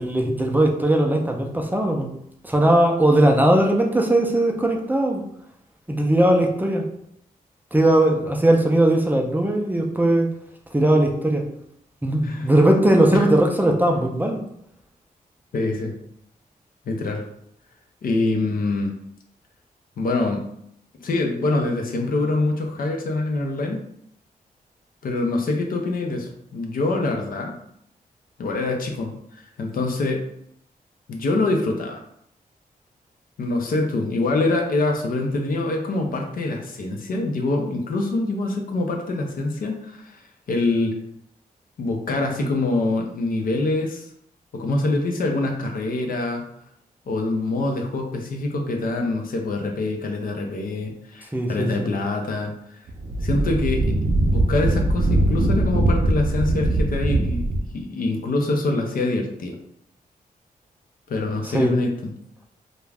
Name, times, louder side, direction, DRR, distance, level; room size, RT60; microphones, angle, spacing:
voice 1, 0.0-2.1 2.4-5.2 5.9-6.8 7.7-10.3 10.7-11.4 12.0-14.4 51.3-51.9 61.5-61.7, right 1 dB, 10° right, 1 dB, 0.4 m, -19 dB
voice 2, 15.5-15.9 16.9-17.2 18.0-18.9 20.0-20.4 21.0-23.8 25.0-27.5 28.4-30.2 31.1-32.0 33.4-40.2 40.5-41.0 41.8-44.1 44.5-46.5 47.1-52.8 53.2-53.9 54.3-57.4 57.7-59.6 61.1-61.9, left 2 dB, 70° left, 2 dB, 0.5 m, -25 dB
Wind, 52.9-57.7, right 1 dB, 65° right, 0.5 m, -21 dB
2.3 x 2.1 x 3.3 m, 0.72 s
cardioid pair, 90°, 15 cm